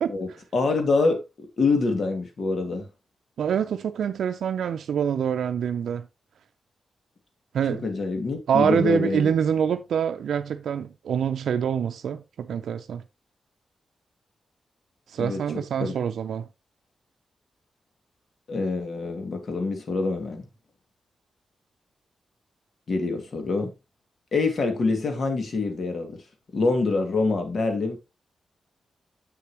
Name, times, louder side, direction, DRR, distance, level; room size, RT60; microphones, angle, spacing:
voice 1, 0.1-2.9 7.7-9.3 15.2-15.4 15.8-16.0 18.5-20.5 22.9-23.7 24.3-26.2 26.5-28.0, left 3 dB, 60° left, 2.2 m, -25 dB
voice 2, 3.4-6.1 7.5-7.8 8.5-13.0 15.1-16.5, right 8 dB, 90° right, 0.4 m, -25 dB
7.6 x 6.8 x 3.0 m
cardioid pair, 75°, 0 cm